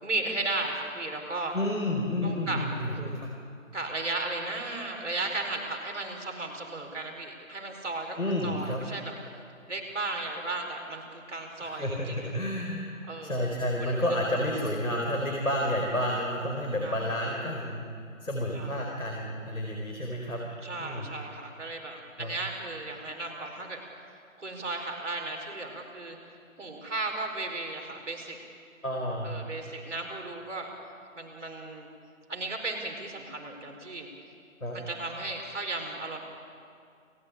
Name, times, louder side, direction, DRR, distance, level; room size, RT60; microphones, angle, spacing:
voice 1, 0.0-1.5 2.2-2.6 3.7-9.1 9.7-12.3 13.1-13.5 13.8-14.0 16.8-17.1 18.5-18.8 20.6-23.8 24.4-26.2 26.6-28.4 29.2-30.7 31.1-31.9 32.3-34.1 34.7-36.2, right 2 dB, 60° right, 2 dB, 4.7 m, -35 dB
voice 2, 1.5-3.3 8.2-8.8 11.6-12.9 13.2-17.8 18.2-20.4 20.8-21.1 22.2-22.3 28.8-29.4 34.6-34.8, left 1 dB, 80° left, -1 dB, 4.4 m, -30 dB
29.5 x 15.5 x 8.6 m, 2.3 s
figure-of-eight pair, 150°, 41 cm